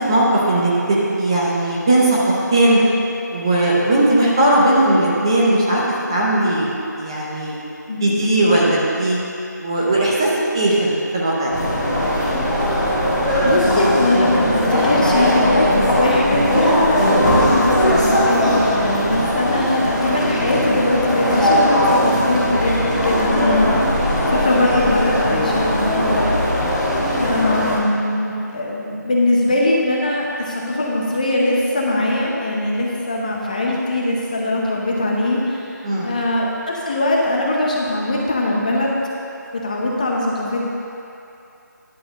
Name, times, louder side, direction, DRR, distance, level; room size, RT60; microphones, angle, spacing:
voice 1, 0.0-2.8 3.3-5.8 6.1-6.7 7.0-7.5 8.0-9.2 9.6-11.5 35.8-36.2, right 1 dB, 15° right, -6 dB, 0.7 m, -18 dB
sound 1, 11.5-27.7, equal, ahead, 1.1 m, -19 dB
voice 2, 13.4-26.9 27.2-39.0 39.5-40.6, left 1 dB, 25° left, -3 dB, 0.7 m, -21 dB
10.5 x 4.2 x 6.6 m, 2.8 s
figure-of-eight pair, 170°, 10 cm